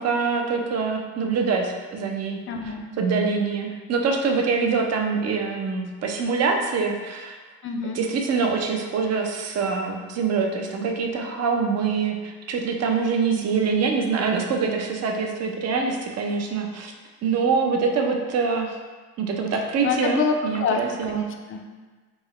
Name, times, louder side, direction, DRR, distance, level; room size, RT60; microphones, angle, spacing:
voice 1, 0.0-2.4 3.0-7.4 7.9-16.9 17.2-18.8 19.2-21.2, right 5 dB, 45° right, 3 dB, 0.6 m, -24 dB
voice 2, 2.5-2.9 7.6-8.0 13.7-13.9 19.5-20.8 21.1-21.7, left 5 dB, 35° left, 3 dB, 0.5 m, -27 dB
4.5 x 2.0 x 3.0 m, 1.4 s
supercardioid pair, 85°, 36 cm